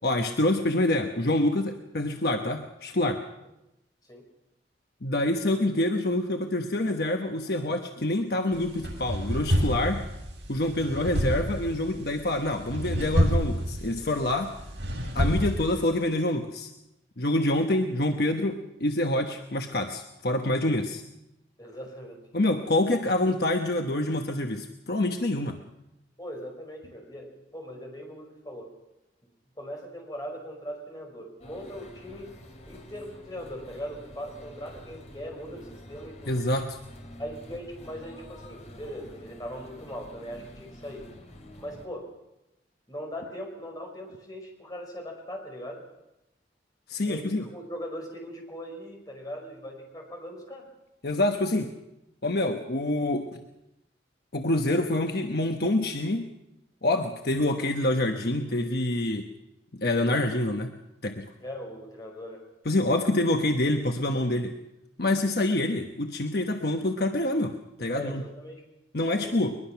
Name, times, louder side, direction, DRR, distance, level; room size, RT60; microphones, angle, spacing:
voice 1, 0.0-3.2 5.0-10.1 10.5-14.5 15.1-16.7 17.2-21.0 22.3-25.6 36.3-36.8 46.9-47.5 51.0-51.7 52.2-53.4 54.3-56.3 56.8-59.3 59.8-60.7 61.0-61.3 62.6-64.6 65.0-68.2 68.9-69.6, left 1 dB, 60° left, 4 dB, 1.1 m, -26 dB
sound 1, 8.5-15.9, equal, 80° right, 7.5 m, -29 dB
voice 2, 21.6-22.2 26.2-28.7 29.6-32.3 32.6-36.4 37.2-41.1 41.6-42.1 42.9-45.8 47.0-50.7 61.4-62.5 67.9-68.7 68.9-69.4, equal, 20° left, 1 dB, 5.4 m, -40 dB
sound 2, 31.4-41.9, left 1 dB, 40° left, 3.3 m, -47 dB
22.0 x 21.5 x 5.9 m, 0.91 s
head